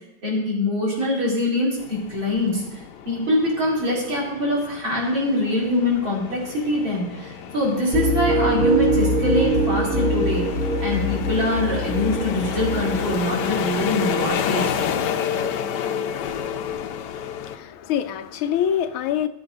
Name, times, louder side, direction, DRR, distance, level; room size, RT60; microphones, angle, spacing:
voice 1, 0.2-2.8 3.1-10.5 10.8-15.0, left 1 dB, 65° right, 5.2 m, -24 dB
sound 1, 1.8-17.6, left 7 dB, 65° left, 1.1 m, -30 dB
sound 2, 7.9-13.2, right 1 dB, 30° right, 0.9 m, -23 dB
voice 2, 17.4-19.3, left 9 dB, 90° left, 1.6 m, -25 dB
14.0 x 7.8 x 5.3 m
omnidirectional pair, 2.3 m